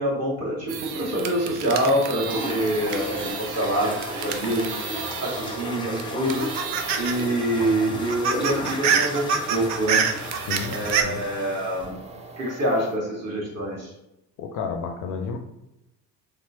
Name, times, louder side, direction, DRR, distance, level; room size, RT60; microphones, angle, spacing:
voice 1, 0.0-4.8 5.2-6.4 7.0-10.0 10.7-12.0 12.4-13.9, right 1 dB, 35° right, -4 dB, 1.5 m, -26 dB
sound 1, 0.7-5.6 6.0-7.3 7.6-7.7 7.9-11.0, right 7 dB, 70° right, 0.5 m, -28 dB
sound 2, 1.7-13.0, right 2 dB, 15° right, 0.5 m, -43 dB
sound 3, 2.3-11.9, left 1 dB, 10° left, 0.9 m, -34 dB
voice 2, 10.5-11.2 14.4-15.4, left 5 dB, 45° left, 3 dB, 0.4 m, -31 dB
3.3 x 2.9 x 2.7 m, 0.90 s
figure-of-eight pair, 50°, 48 cm